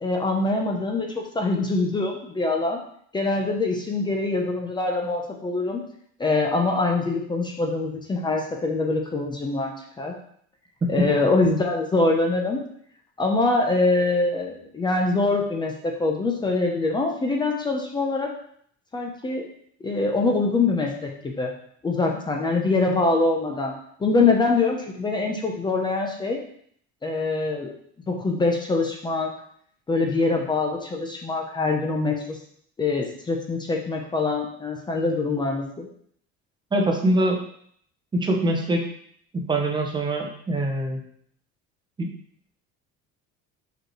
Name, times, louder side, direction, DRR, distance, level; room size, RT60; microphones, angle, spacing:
voice 1, 0.0-2.8 3.1-5.8 6.2-10.2 10.9-12.6 13.2-18.3 18.9-19.4 19.8-21.5 21.8-23.7 24.0-26.4 27.0-27.7 28.1-29.3 29.9-32.4 32.8-35.9, left 3 dB, 15° left, 2 dB, 0.7 m, -24 dB
voice 2, 36.7-37.4 38.1-38.8 39.3-41.0 42.0-42.1, right 1 dB, 15° right, 2 dB, 0.8 m, -23 dB
5.1 x 4.8 x 4.5 m, 0.64 s
cardioid pair, 170°, 30 cm